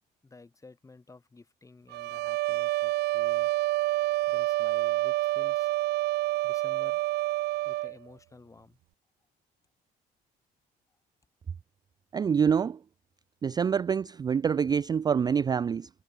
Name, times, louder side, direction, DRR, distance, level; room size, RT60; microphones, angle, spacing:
voice 1, 0.2-3.5 4.3-5.7 6.4-7.0 7.6-8.8, left 3 dB, 20° left, 3.9 m, -52 dB
sound 1, 1.9-7.9, right 18 dB, 80° right, 0.7 m, -28 dB
voice 2, 12.1-12.8 13.4-15.9, right 7 dB, 25° right, 0.3 m, -26 dB
cardioid pair, 110°, 17 cm